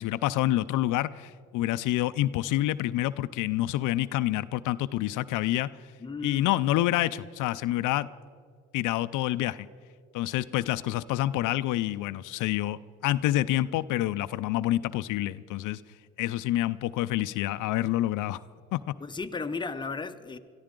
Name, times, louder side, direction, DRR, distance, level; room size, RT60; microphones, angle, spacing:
voice 1, 0.0-5.7 6.2-8.1 8.7-9.7 10.1-15.8 16.2-18.4 18.7-18.9, left 15 dB, 85° left, 14 dB, 0.5 m, -27 dB
voice 2, 6.0-6.4 19.0-20.4, left 4 dB, 15° left, 7 dB, 0.7 m, -34 dB
22.0 x 14.0 x 3.7 m, 2.2 s
cardioid pair, 90°, 30 cm